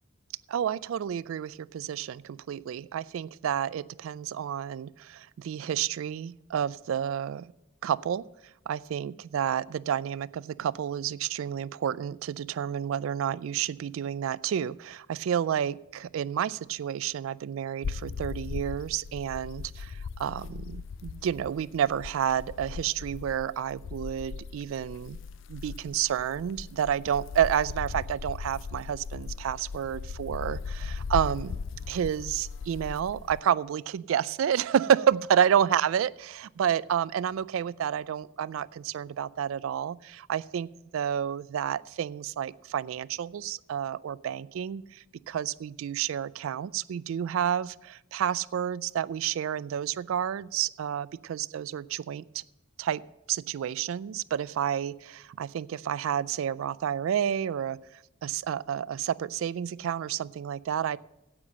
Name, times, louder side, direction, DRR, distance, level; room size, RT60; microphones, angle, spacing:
voice 1, 0.5-7.5 7.8-8.2 8.7-25.2 25.5-52.4 52.8-53.0 53.3-57.8 58.2-61.0, right 9 dB, 80° right, 20 dB, 0.3 m, -30 dB
sound 1, 17.8-33.4, left 5 dB, 65° left, 0.4 m, -38 dB
9.9 x 8.5 x 6.3 m, 0.91 s
head